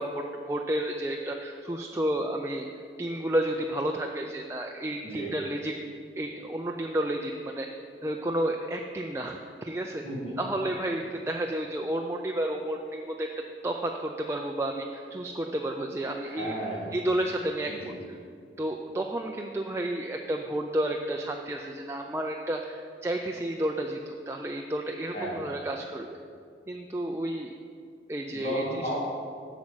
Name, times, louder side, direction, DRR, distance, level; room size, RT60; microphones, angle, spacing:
voice 1, 0.0-2.7 3.0-5.7 6.2-7.7 8.0-10.0 10.4-13.3 13.6-16.6 16.9-18.2 18.6-26.2 26.7-27.5 28.1-29.0, right 1 dB, 15° right, 2 dB, 0.4 m, -31 dB
voice 2, 5.0-5.4 10.0-10.4 16.2-17.0 17.7-18.0 25.1-25.6 28.3-29.0, right 1 dB, 35° left, -4 dB, 2.3 m, -34 dB
8.4 x 6.0 x 7.9 m, 2.3 s
head